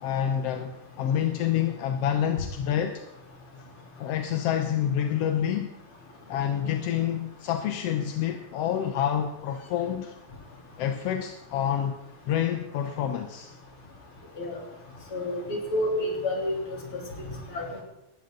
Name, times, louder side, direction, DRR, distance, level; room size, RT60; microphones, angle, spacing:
voice 1, 0.0-3.0 4.0-5.7 6.3-10.2 10.8-12.0 12.3-13.5, left 9 dB, 65° left, 6 dB, 1.7 m, -28 dB
voice 2, 15.1-16.5 16.9-17.0 17.5-17.8, left 1 dB, 45° left, -1 dB, 4.2 m, -29 dB
19.5 x 14.5 x 3.9 m, 0.93 s
omnidirectional pair, 3.3 m